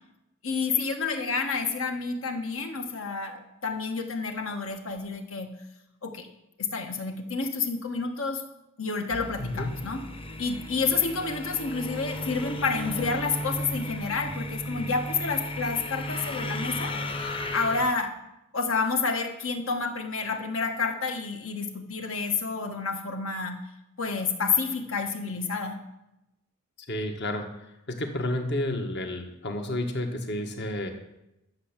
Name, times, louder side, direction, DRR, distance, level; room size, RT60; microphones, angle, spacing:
voice 1, 0.4-5.5 6.0-6.3 6.6-8.4 8.8-10.0 10.4-16.9 17.5-18.1 18.5-23.6 24.0-25.8, left 4 dB, 75° left, 5 dB, 1.6 m, -29 dB
sound 1, 9.1-17.9, left 1 dB, 25° left, 0.9 m, -35 dB
voice 2, 9.4-9.7 26.9-27.5 27.9-30.9, left 1 dB, 55° left, 4 dB, 1.5 m, -30 dB
12.5 x 7.2 x 7.4 m, 0.91 s
head